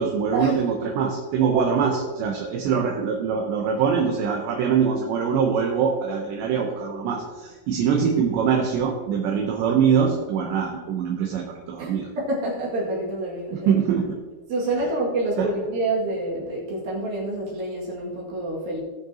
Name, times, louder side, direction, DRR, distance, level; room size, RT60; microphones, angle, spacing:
voice 1, 0.0-12.1 13.5-14.2 15.4-15.5, right 6 dB, 75° right, 1 dB, 2.8 m, -23 dB
voice 2, 11.8-13.7 14.5-18.8, right 2 dB, 55° right, -4 dB, 3.2 m, -27 dB
19.5 x 6.6 x 2.9 m, 1.4 s
omnidirectional pair, 5.9 m